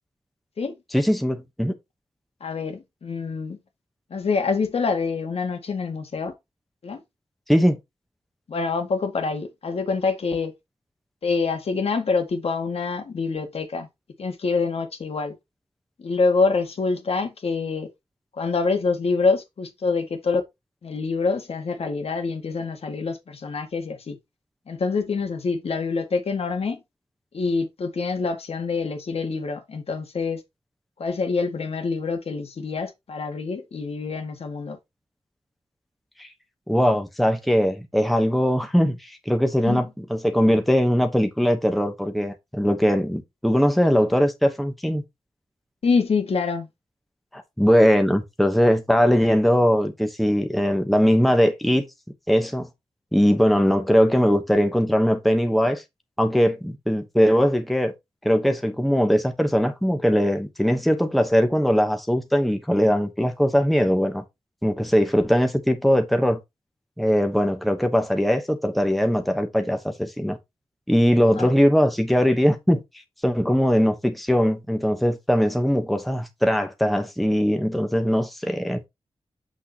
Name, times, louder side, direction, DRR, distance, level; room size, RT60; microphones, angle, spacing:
voice 1, 0.9-1.7 7.5-7.8 36.2-36.3 36.7-45.0 47.3-51.8 52.3-52.7 53.1-55.8 56.2-57.9 58.2-64.2 64.6-66.4 67.0-70.4 70.9-72.8 73.2-78.9, equal, ahead, 1.0 m, -20 dB
voice 2, 2.4-3.6 4.1-6.3 6.8-7.0 8.5-10.5 11.2-13.9 14.2-15.4 16.0-17.9 18.3-20.4 20.8-24.2 24.7-26.8 27.3-30.4 31.0-34.8 39.6-39.8 45.8-46.7 71.4-71.5, left 4 dB, 75° left, 1.8 m, -26 dB
7.7 x 6.3 x 2.9 m
wide cardioid pair, 115°, 10 cm